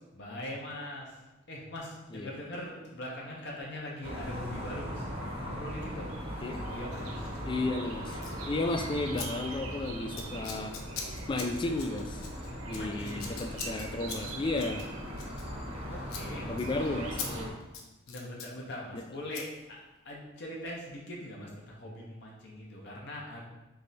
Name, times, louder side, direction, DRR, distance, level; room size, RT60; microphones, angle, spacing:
voice 1, 0.1-1.2 1.5-5.1 5.4-6.1 6.4-7.3 12.8-13.3 15.9-16.5 18.1-23.4, left 1 dB, 55° left, -2 dB, 0.8 m, -41 dB
sound 1, 3.1-4.2 4.7-17.4, right 5 dB, 85° right, 0.5 m, -48 dB
sound 2, 4.0-17.5, equal, 30° right, 0.8 m, -39 dB
voice 2, 7.5-8.2 8.5-10.8 11.3-12.3 12.7-14.8 16.5-17.6 18.9-19.0, left 2 dB, 25° left, 4 dB, 0.3 m, -33 dB
Scissors, 8.1-8.4 9.2-9.3 9.5-9.8 10.1-15.8 16.1-16.3 16.6-16.7 17.2-17.3 17.6-18.5 19.3-19.5, left 6 dB, 90° left, 0.6 m, -42 dB
3.5 x 3.2 x 4.0 m, 1.0 s
head